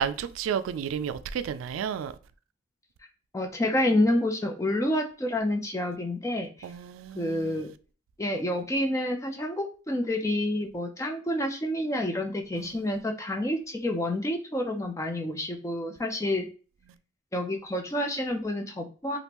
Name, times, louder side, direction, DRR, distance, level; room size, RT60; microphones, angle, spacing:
voice 1, 0.0-2.1 6.6-7.6 12.6-12.8 16.2-16.3, right 8 dB, 90° right, 0.3 m, -32 dB
voice 2, 3.3-6.5 7.1-7.7 8.2-16.5 17.3-19.2, left 1 dB, 15° left, 0.4 m, -28 dB
3.5 x 2.4 x 2.9 m
head